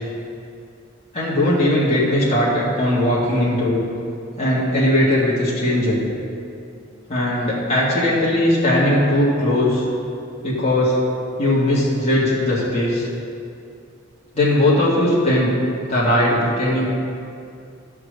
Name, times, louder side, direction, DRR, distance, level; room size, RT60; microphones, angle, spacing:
voice 1, 1.1-3.8 4.4-6.0 7.1-9.9 10.4-11.0 11.4-13.1 14.3-15.6 15.9-16.8, left 1 dB, 30° left, -8 dB, 2.1 m, -19 dB
12.0 x 4.6 x 6.6 m, 2.5 s
head